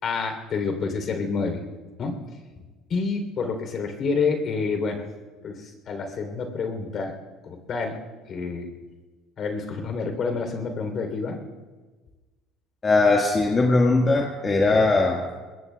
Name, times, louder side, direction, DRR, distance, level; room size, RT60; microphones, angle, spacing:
voice 1, 0.0-1.6 2.0-2.2 2.9-5.0 5.4-7.1 7.4-8.0 8.3-8.7 9.4-11.4, left 4 dB, 45° left, 5 dB, 3.2 m, -28 dB
voice 2, 12.8-15.4, left 3 dB, 25° left, 0 dB, 1.6 m, -20 dB
24.0 x 20.5 x 2.3 m, 1.3 s
supercardioid pair, 100°, 0 cm